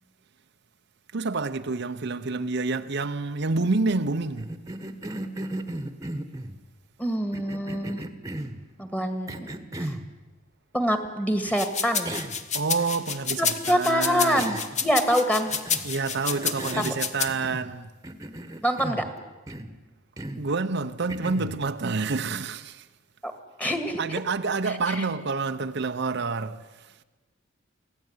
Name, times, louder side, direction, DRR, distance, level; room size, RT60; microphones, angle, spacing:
voice 1, 1.1-4.5 12.5-14.6 15.8-17.9 20.4-22.9 24.0-26.9, right 3 dB, 55° right, 0.8 m, -28 dB
Cough, 4.4-6.6 7.3-8.6 9.3-10.1 11.4-11.6 12.0-12.4 12.8-12.9 14.3-14.9 15.5-15.9 16.3-17.7 18.0-19.1 19.5-19.8 20.2-20.5 21.1-21.6, right 1 dB, 15° right, 1.3 m, -36 dB
voice 2, 7.0-8.0 8.8-9.5 9.8-10.0 10.7-12.1 13.4-15.5 16.8-16.9 18.6-19.0 23.2-23.3 23.6-24.0 24.7-25.1, equal, 5° left, 2.0 m, -25 dB
sound 1, 11.5-17.3, left 6 dB, 35° left, 1.4 m, -29 dB
24.5 x 17.0 x 9.6 m
head